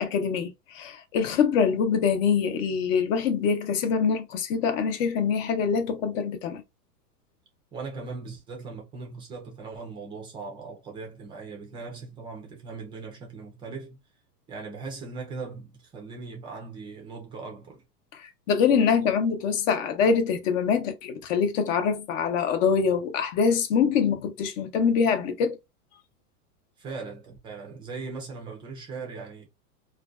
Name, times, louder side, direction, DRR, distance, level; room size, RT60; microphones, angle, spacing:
voice 1, 0.0-6.6 18.2-25.6, left 6 dB, 55° left, 0.8 m, -24 dB
voice 2, 7.7-14.0 14.5-17.8 26.8-29.5, right 4 dB, 10° right, 0.3 m, -39 dB
2.5 x 2.2 x 2.2 m
hypercardioid pair, 125°, 46 cm